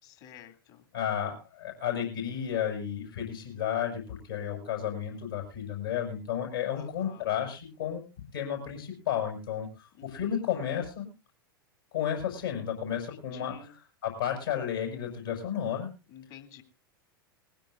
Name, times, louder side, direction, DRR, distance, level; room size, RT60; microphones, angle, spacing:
voice 1, 0.0-0.9 6.7-7.3 10.0-10.5 13.1-13.7 16.1-16.6, left 9 dB, 50° left, 6 dB, 2.5 m, -51 dB
voice 2, 0.9-8.0 8.3-11.1 11.9-13.6 14.0-15.9, left 9 dB, 70° left, 1 dB, 6.2 m, -32 dB
21.0 x 15.5 x 2.5 m, 0.29 s
figure-of-eight pair, 90°, 12 cm